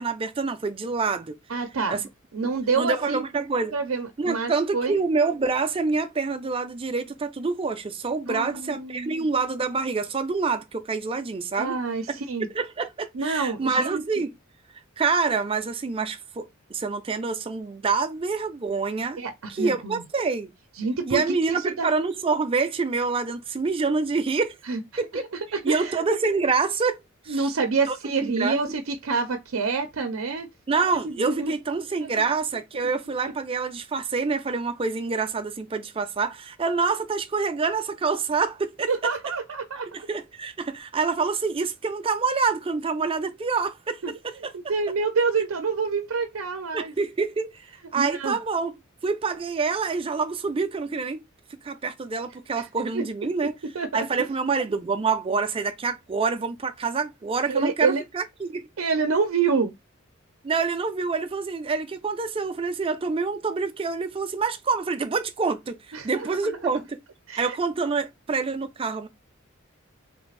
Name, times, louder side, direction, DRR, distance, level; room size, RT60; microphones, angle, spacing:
voice 1, 0.0-1.4 1.9-2.0 2.4-3.7 4.2-11.8 12.5-14.3 15.0-19.2 19.5-20.5 21.1-24.6 25.0-25.2 25.6-27.0 27.3-27.5 27.9-28.0 28.2-28.6 30.7-38.9 39.9-44.3 46.7-47.5 47.9-48.7 49.0-51.2 51.6-53.5 53.9-58.7 60.4-65.7 66.0-67.0 67.4-69.1, right 4 dB, 25° right, 0.4 m, -26 dB
voice 2, 1.5-2.0 2.3-3.2 3.7-5.0 8.3-9.3 11.6-12.5 13.1-14.0 19.2-20.0 20.8-21.2 21.5-21.9 24.7-24.8 25.1-25.2 25.5-26.0 27.3-30.5 31.0-31.5 32.0-32.1 38.9-39.9 44.0-44.1 44.5-46.9 48.0-48.4 52.6-52.7 52.9-53.0 53.7-54.1 57.5-58.0 58.8-59.7 65.9-66.7 67.3-67.6, right 4 dB, 85° right, 0.6 m, -27 dB
3.3 x 2.4 x 3.2 m
head